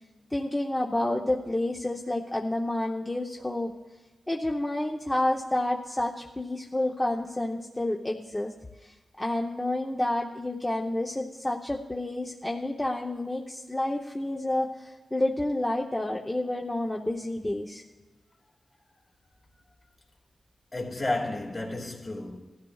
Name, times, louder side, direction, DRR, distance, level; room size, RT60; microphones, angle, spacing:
voice 1, 0.3-3.7 4.3-8.5 8.8-8.9 9.2-17.8, left 1 dB, 15° left, 0.8 m, -29 dB
voice 2, 20.7-22.4, left 2 dB, 40° left, 2.1 m, -31 dB
19.0 x 13.0 x 2.4 m
wide cardioid pair, 85°, 0 cm